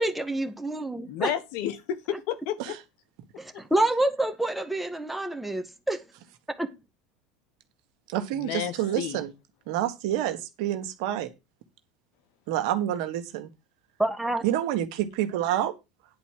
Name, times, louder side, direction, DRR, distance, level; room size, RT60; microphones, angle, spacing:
voice 1, 0.0-1.3 3.4-6.0 6.5-6.7 14.0-14.4, right 1 dB, 5° right, 1.7 m, -27 dB
voice 2, 1.0-2.7 8.3-9.2, left 10 dB, 65° left, 1.3 m, -31 dB
voice 3, 8.1-9.3 9.7-11.3 12.5-13.5 14.4-15.7, right 12 dB, 70° right, 1.5 m, -28 dB
10.5 x 4.3 x 7.5 m
hypercardioid pair, 100°, 4 cm